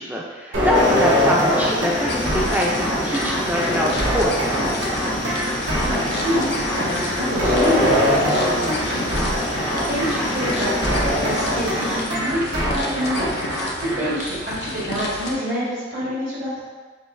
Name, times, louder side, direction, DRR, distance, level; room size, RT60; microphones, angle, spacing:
voice 1, 0.0-4.7, equal, 10° right, -3 dB, 0.5 m, -24 dB
sound 1, 0.5-14.1, equal, 90° right, 1.0 m, -23 dB
sound 2, 0.7-12.0, left 1 dB, 80° left, 1.1 m, -28 dB
sound 3, 2.1-15.3, left 2 dB, 60° left, 0.5 m, -32 dB
voice 2, 5.7-9.2 9.9-16.6, equal, 75° right, -9 dB, 1.3 m, -27 dB
6.2 x 2.7 x 2.5 m, 1.4 s
head